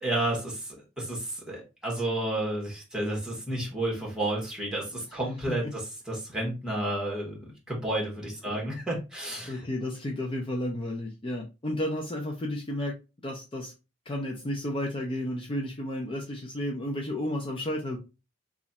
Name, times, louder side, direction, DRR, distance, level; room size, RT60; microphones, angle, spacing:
voice 1, 0.0-9.6, right 1 dB, 5° right, -3 dB, 1.4 m, -31 dB
voice 2, 9.5-12.9 13.2-13.7 14.1-18.0, left 1 dB, 25° left, 0 dB, 0.5 m, -32 dB
3.0 x 2.4 x 4.0 m, 0.29 s
head